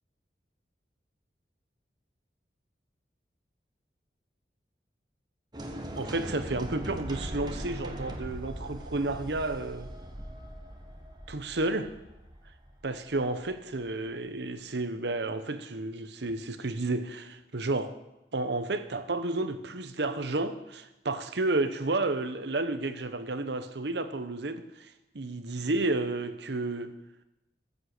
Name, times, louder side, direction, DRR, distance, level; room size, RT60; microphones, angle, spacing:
sound 1, 5.5-13.6, right 1 dB, 25° right, 1.2 m, -40 dB
voice 1, 6.0-9.9 11.3-11.9 12.8-17.9 18.3-26.9, right 2 dB, 80° right, 1.0 m, -31 dB
14.5 x 7.6 x 6.6 m
head